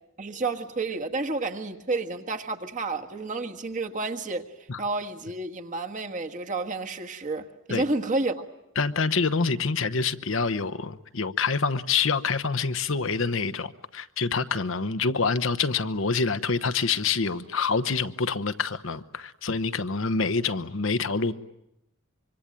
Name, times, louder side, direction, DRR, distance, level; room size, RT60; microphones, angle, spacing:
voice 1, 0.2-4.4 4.8-8.4, right 3 dB, 40° right, 1.6 m, -30 dB
voice 2, 8.8-21.3, left 4 dB, 70° left, 1.0 m, -26 dB
25.5 x 25.0 x 9.0 m
head